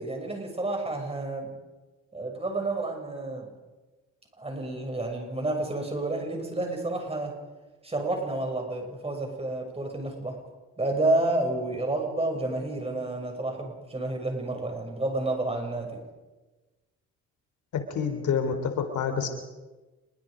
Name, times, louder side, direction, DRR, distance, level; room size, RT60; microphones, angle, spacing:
voice 1, 0.0-1.5 2.1-3.5 4.4-7.3 7.8-10.4 10.8-16.0, right 2 dB, 20° right, 2 dB, 7.0 m, -30 dB
voice 2, 17.9-19.3, left 6 dB, 75° left, 7 dB, 3.7 m, -27 dB
27.5 x 23.0 x 5.2 m, 1.2 s
cardioid pair, 90°, 30 cm